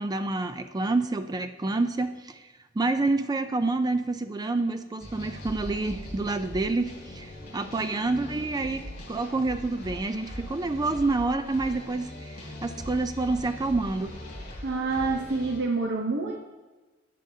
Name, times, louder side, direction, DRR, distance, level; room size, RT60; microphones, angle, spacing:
voice 1, 0.0-2.5 2.8-14.1, right 3 dB, 20° right, 9 dB, 0.4 m, -28 dB
sound 1, 5.0-15.6, left 1 dB, 50° left, 3.6 m, -41 dB
voice 2, 14.6-16.4, right 3 dB, 60° right, 1 dB, 0.8 m, -27 dB
14.0 x 9.1 x 2.7 m, 1.2 s
head